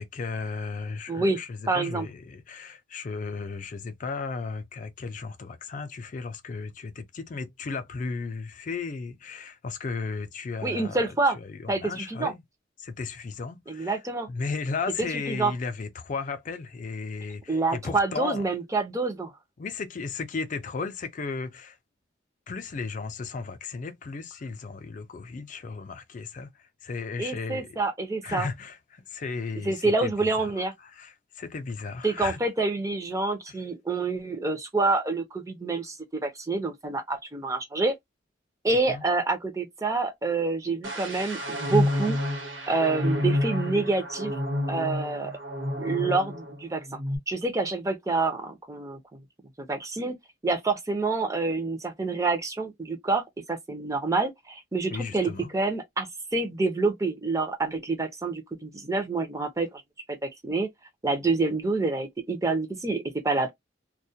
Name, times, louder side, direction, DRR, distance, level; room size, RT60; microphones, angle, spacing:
voice 1, 0.0-12.4 12.8-14.0 14.3-18.5 19.6-21.8 22.5-27.8 28.2-32.4 38.9-39.0 54.9-55.5, left 4 dB, 45° left, 0.4 m, -35 dB
voice 2, 1.1-1.4 1.7-2.1 10.6-11.4 11.7-12.3 13.7-14.3 15.0-15.5 17.5-19.3 27.2-28.5 29.7-30.7 32.0-37.9 38.6-42.2 42.7-44.4 44.7-45.3 45.8-47.0 47.3-49.2 49.6-50.2 50.4-59.8 60.1-60.7 61.0-63.5, right 3 dB, 15° right, 0.5 m, -27 dB
sound 1, 40.8-46.6 46.9-47.2, left 1 dB, 85° right, 1.0 m, -29 dB
2.2 x 2.1 x 2.6 m
head